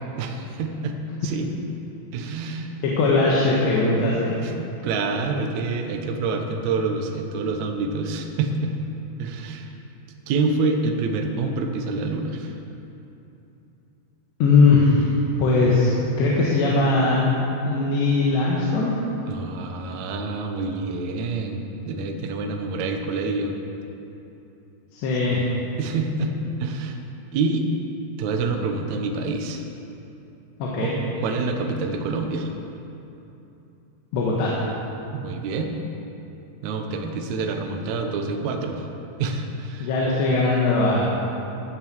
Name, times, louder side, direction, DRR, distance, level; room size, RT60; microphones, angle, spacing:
voice 1, 0.2-1.0 1.2-1.5 2.1-2.7 3.1-3.2 4.3-8.7 9.2-9.7 10.3-12.5 19.3-21.6 21.9-23.6 25.8-26.3 26.6-27.0 27.3-27.7 28.2-29.6 30.8-32.5 35.1-35.8 36.6-38.8 39.2-39.9, right 3 dB, 80° right, 3 dB, 1.6 m, -27 dB
voice 2, 2.8-4.3 14.4-15.1 15.4-15.9 16.2-17.2 17.7-19.0 24.9-25.4 30.6-30.9 34.1-34.6 39.8-41.1, left 3 dB, 90° left, -5 dB, 3.6 m, -20 dB
14.5 x 7.5 x 7.9 m, 2.9 s
omnidirectional pair, 4.9 m